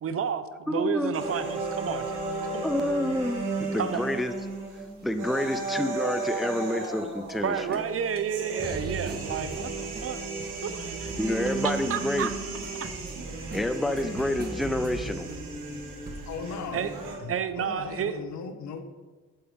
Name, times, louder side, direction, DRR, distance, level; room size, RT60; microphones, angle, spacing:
voice 1, 0.0-2.2 2.5-2.7 3.8-4.0 7.4-10.2 10.6-11.1 11.6-12.3 12.8-12.9 16.7-16.9 17.3-18.2, right 8 dB, 50° right, 12 dB, 0.7 m, -31 dB
voice 2, 0.7-1.1 2.6-4.3 5.0-7.8 11.2-12.4 13.5-15.3, left 1 dB, ahead, 9 dB, 0.5 m, -28 dB
sound 1, 1.1-17.1, right 3 dB, 90° right, 2.2 m, -35 dB
sound 2, 1.6-4.2 5.1-5.6 6.8-7.0 7.3-7.4 7.7-7.8 8.2-17.9, right 2 dB, 30° right, 1.3 m, -42 dB
voice 3, 16.3-18.8, left 5 dB, 65° left, 7 dB, 1.0 m, -38 dB
8.8 x 7.8 x 3.6 m, 1.4 s
cardioid pair, 90°, 30 cm